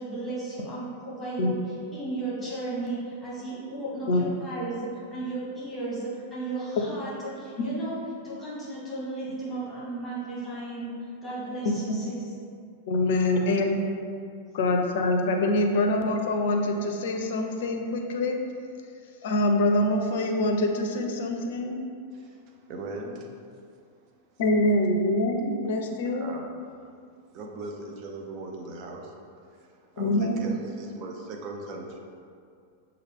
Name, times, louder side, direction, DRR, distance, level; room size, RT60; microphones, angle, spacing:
voice 1, 0.0-1.5 1.9-8.0 8.2-12.2 30.1-30.4, right 2 dB, 15° left, -8 dB, 1.4 m, -35 dB
voice 2, 11.6-12.0 12.9-13.7 14.5-18.4 19.2-21.8 24.4-26.2 30.0-30.4, left 1 dB, 55° left, 3 dB, 0.5 m, -25 dB
voice 3, 22.1-23.3 26.1-26.5 27.3-29.1 29.5-32.0, right 2 dB, 40° right, 1 dB, 0.6 m, -39 dB
6.3 x 2.3 x 3.6 m, 2.3 s
figure-of-eight pair, 95°, 0 cm